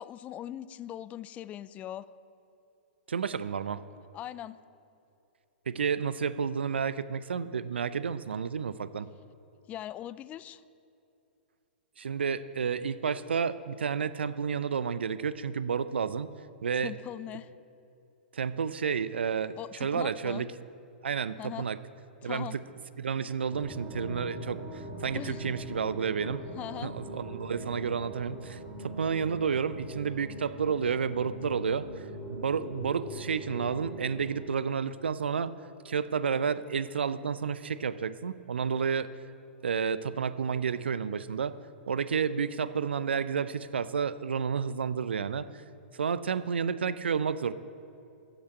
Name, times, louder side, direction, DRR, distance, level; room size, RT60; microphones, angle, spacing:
voice 1, 0.0-2.1 4.1-4.6 9.7-10.6 16.7-17.5 19.6-20.5 21.4-21.7 22.2-22.6 25.1-25.4 26.6-26.9, left 11 dB, 25° left, 16 dB, 0.4 m, -40 dB
voice 2, 3.1-3.8 5.7-9.1 12.0-16.3 16.6-16.9 18.3-20.5 21.0-21.8 22.2-22.6 23.0-26.4 26.8-35.5 35.8-39.1 39.6-41.5 41.9-45.5 45.9-47.5, right 6 dB, 75° right, 15 dB, 0.5 m, -31 dB
sound 1, 23.5-34.5, equal, 10° right, 2.2 m, -42 dB
14.5 x 6.0 x 8.3 m, 2.7 s
figure-of-eight pair, 115°, 6 cm